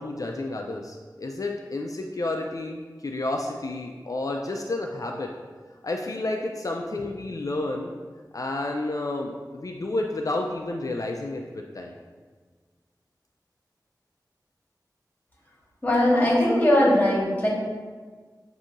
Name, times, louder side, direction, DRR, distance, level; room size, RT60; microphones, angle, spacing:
voice 1, 0.0-5.3 5.8-7.9 8.3-11.9, left 2 dB, 50° left, 2 dB, 0.3 m, -30 dB
voice 2, 15.8-17.5, left 1 dB, 25° left, -5 dB, 1.4 m, -20 dB
7.1 x 2.7 x 2.5 m, 1.5 s
wide cardioid pair, 55°, 7 cm